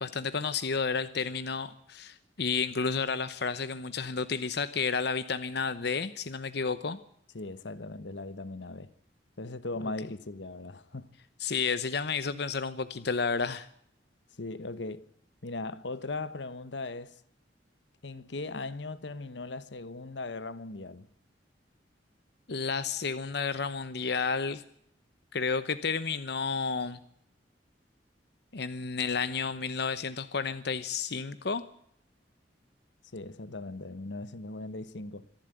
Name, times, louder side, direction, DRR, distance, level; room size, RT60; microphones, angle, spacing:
voice 1, 0.0-7.0 11.4-13.7 22.5-24.6 25.3-27.0 28.5-31.6, left 5 dB, 65° left, 0.9 m, -31 dB
voice 2, 7.3-8.9 9.4-11.1 14.4-15.1 15.4-17.2 18.0-21.1 33.1-35.2, left 2 dB, 85° left, 1.2 m, -38 dB
25.5 x 12.0 x 9.0 m
head